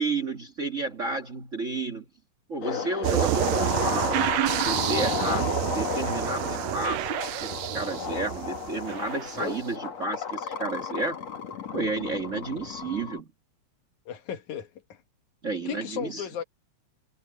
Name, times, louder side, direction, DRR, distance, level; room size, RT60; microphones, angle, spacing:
voice 1, 0.0-2.0 2.5-4.2 4.6-11.2 11.7-13.3 15.4-16.3, right 3 dB, 30° right, 1.6 m, -32 dB
sound 1, 2.6-13.2, left 6 dB, 60° left, 3.4 m, -33 dB
sound 2, 3.0-9.6, right 15 dB, 80° right, 1.8 m, -29 dB
voice 2, 14.1-15.0 15.7-16.4, left 9 dB, 80° left, 3.0 m, -35 dB
omnidirectional pair, 3.4 m